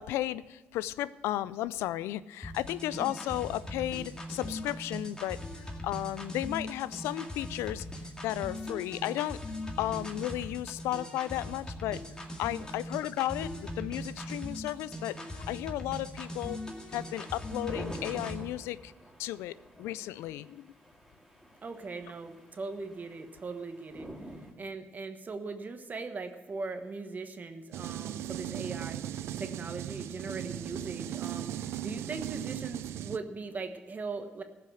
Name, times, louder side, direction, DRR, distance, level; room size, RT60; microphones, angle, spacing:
voice 1, 0.0-7.9 8.2-9.4 9.8-12.0 12.4-16.6 16.9-18.9 19.2-20.7, left 14 dB, 85° left, 18 dB, 0.3 m, -34 dB
sound 1, 2.4-18.4, left 1 dB, 20° left, 2.2 m, -40 dB
sound 2, 16.4-24.5, equal, ahead, 3.9 m, -49 dB
voice 2, 21.6-24.1 24.6-34.4, right 4 dB, 40° right, 7 dB, 1.2 m, -40 dB
sound 3, 27.7-33.2, right 11 dB, 80° right, 0.4 m, -37 dB
15.0 x 5.8 x 7.7 m, 1.1 s
supercardioid pair, 65°, 4 cm